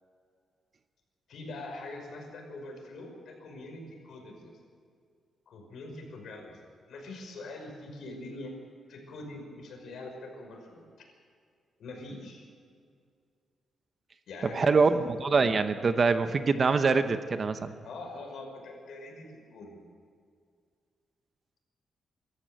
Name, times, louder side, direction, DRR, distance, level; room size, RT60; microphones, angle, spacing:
voice 1, 1.3-4.5 5.5-6.5 6.9-8.5 8.9-10.8 11.8-12.4 14.3-15.5 17.8-19.9, left 2 dB, 65° left, 2 dB, 5.6 m, -43 dB
voice 2, 14.5-17.7, right 4 dB, 30° right, 9 dB, 0.8 m, -24 dB
24.0 x 14.0 x 9.1 m, 2.1 s
wide cardioid pair, 175°, 0 cm